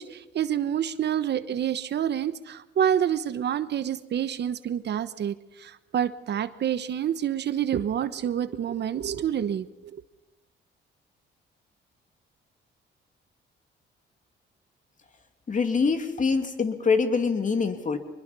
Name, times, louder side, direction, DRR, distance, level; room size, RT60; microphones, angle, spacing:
voice 1, 0.0-10.0, right 9 dB, 60° right, 13 dB, 1.1 m, -28 dB
voice 2, 15.5-18.0, left 5 dB, 40° left, 7 dB, 2.7 m, -24 dB
24.0 x 21.5 x 5.5 m, 1.0 s
cardioid pair, 90°, 20 cm